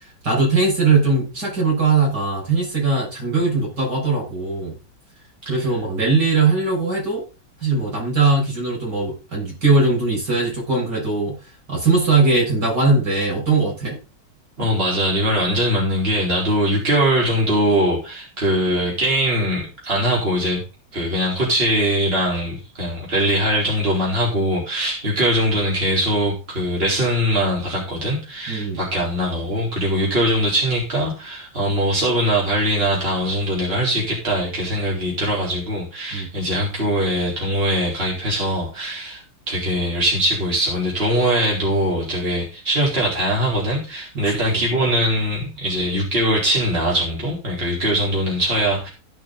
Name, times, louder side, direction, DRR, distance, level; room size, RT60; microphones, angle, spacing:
voice 1, 0.2-4.8 5.5-7.3 7.6-11.4 11.7-14.0 28.5-28.8 36.1-36.3 44.2-44.6, right 3 dB, 70° right, -1 dB, 7.0 m, -20 dB
voice 2, 14.6-20.6 20.9-39.2 39.5-48.9, equal, 30° right, -4 dB, 4.5 m, -21 dB
16.0 x 6.9 x 4.0 m, 0.30 s
omnidirectional pair, 1.9 m